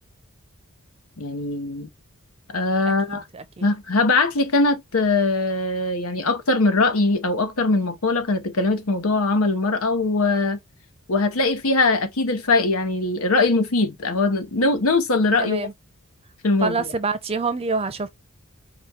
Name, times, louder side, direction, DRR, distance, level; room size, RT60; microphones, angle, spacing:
voice 1, 1.2-1.9 2.5-3.2 3.6-10.6 11.1-15.6 16.4-16.8, left 3 dB, 75° left, 1.0 m, -21 dB
voice 2, 2.9-3.6 15.4-15.7 16.6-18.1, right 4 dB, 25° right, 0.6 m, -27 dB
5.0 x 2.4 x 4.2 m
head